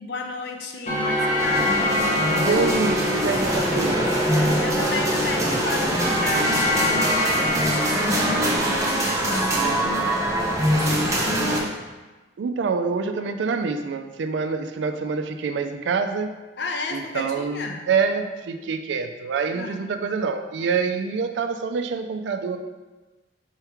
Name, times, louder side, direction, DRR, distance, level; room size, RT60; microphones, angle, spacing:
voice 1, 0.0-1.8 4.1-10.1 10.7-11.8 16.6-17.9 19.5-19.8, left 3 dB, 65° left, 3 dB, 0.5 m, -33 dB
sound 1, 0.9-9.6, left 1 dB, 35° left, 0.8 m, -26 dB
sound 2, 1.4-11.6, right 1 dB, 15° right, 0.6 m, -23 dB
voice 2, 2.3-4.1 11.6-11.7 12.4-16.4 16.9-22.6, right 5 dB, 75° right, 8 dB, 0.3 m, -26 dB
4.5 x 3.0 x 3.4 m, 1.2 s
head